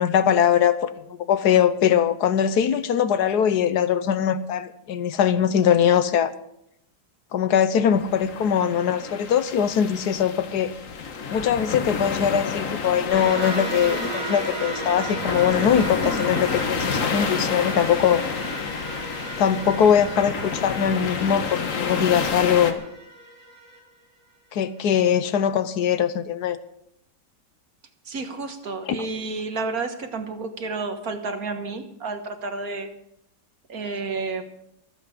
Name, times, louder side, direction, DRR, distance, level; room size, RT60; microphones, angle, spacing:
voice 1, 0.0-6.3 7.3-10.7 11.3-18.2 19.4-22.8 24.5-26.6 28.8-29.0, left 8 dB, 70° left, 13 dB, 1.3 m, -21 dB
sound 1, 7.9-22.7, left 5 dB, 50° left, 1.5 m, -30 dB
Horror Drone, 13.1-23.8, right 2 dB, 85° right, 3.8 m, -34 dB
voice 2, 28.0-32.9 33.7-34.4, right 3 dB, 55° right, 7 dB, 1.7 m, -30 dB
24.5 x 8.3 x 5.1 m, 0.76 s
omnidirectional pair, 1.9 m